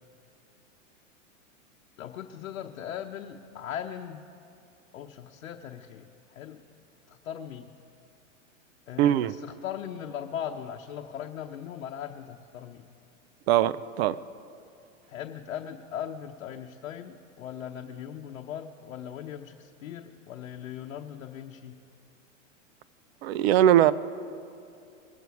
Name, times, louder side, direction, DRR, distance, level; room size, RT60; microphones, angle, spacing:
voice 1, 2.0-4.3 4.9-6.6 7.1-7.7 8.9-12.9 15.1-21.8, left 9 dB, 70° left, 2 dB, 0.9 m, -39 dB
voice 2, 9.0-9.3 13.5-14.2 23.2-23.9, right 11 dB, 50° right, 16 dB, 0.5 m, -21 dB
23.0 x 8.2 x 4.7 m, 2.6 s
hypercardioid pair, 120°, 39 cm